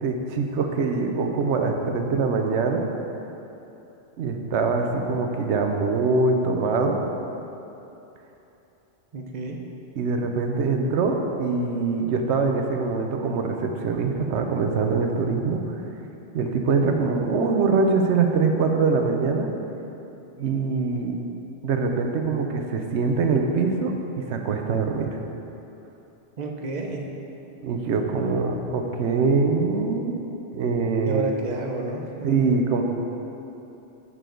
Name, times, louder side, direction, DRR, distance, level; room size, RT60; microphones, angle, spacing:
voice 1, 0.0-2.9 4.2-7.0 10.0-15.7 16.3-19.5 20.4-21.2 21.6-25.2 27.6-30.1 30.5-31.2 32.2-32.8, right 4 dB, 75° right, 3 dB, 1.0 m, -23 dB
voice 2, 9.1-9.6 26.4-27.1 28.2-28.7 31.1-32.4, right 2 dB, 45° right, 1 dB, 0.7 m, -31 dB
11.0 x 4.9 x 3.8 m, 3.0 s
omnidirectional pair, 1.2 m